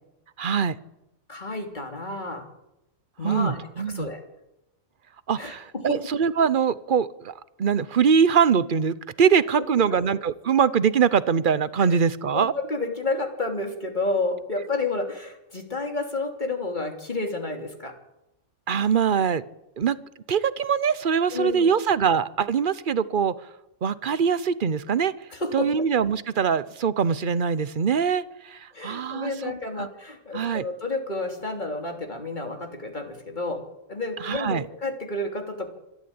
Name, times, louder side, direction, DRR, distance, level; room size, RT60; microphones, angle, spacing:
voice 1, 0.4-0.8 3.2-4.1 5.3-7.3 7.6-12.5 18.7-19.4 19.8-20.0 20.3-23.3 23.8-25.1 25.5-29.5 29.8-29.9 30.3-30.7 34.2-34.6, right 7 dB, 45° right, 16 dB, 0.9 m, -23 dB
voice 2, 1.3-2.5 3.2-4.2 5.4-6.0 9.6-9.8 11.8-12.0 12.3-18.0 21.3-21.7 25.3-25.8 28.7-35.7, left 2 dB, 35° left, 3 dB, 3.2 m, -30 dB
25.5 x 12.5 x 8.8 m, 0.90 s
omnidirectional pair, 1.4 m